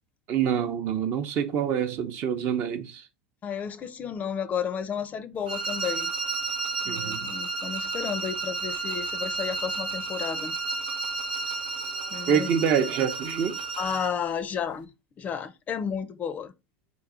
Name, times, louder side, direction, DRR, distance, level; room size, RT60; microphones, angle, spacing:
voice 1, 0.3-3.1 6.9-7.3 12.3-13.6, right 8 dB, 50° right, 0.6 m, -26 dB
voice 2, 3.4-6.1 6.8-10.6 11.8-12.5 13.8-14.9 15.2-16.5, left 7 dB, 35° left, 0.5 m, -32 dB
sound 1, 5.5-14.2, right 4 dB, 90° right, 0.7 m, -32 dB
3.8 x 2.6 x 3.7 m
hypercardioid pair, 100°, 5 cm